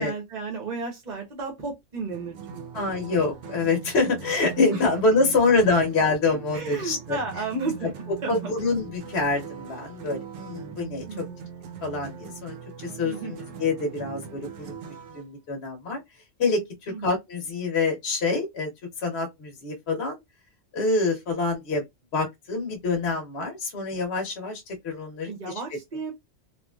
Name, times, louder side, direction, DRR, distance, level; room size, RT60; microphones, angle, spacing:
voice 1, 0.0-2.6 4.7-4.8 6.5-7.9 8.2-8.5 11.1-11.4 13.0-13.4 16.9-17.1 25.2-26.1, right 4 dB, 45° right, 0.8 m, -33 dB
sound 1, 2.1-15.2, right 7 dB, 75° right, 0.9 m, -41 dB
voice 2, 2.7-7.2 8.3-11.2 11.8-14.8 15.1-16.0 16.4-18.7 19.0-20.2 20.7-21.8 22.1-25.3, left 3 dB, 60° left, 1.0 m, -26 dB
2.9 x 2.4 x 2.2 m
omnidirectional pair, 1.3 m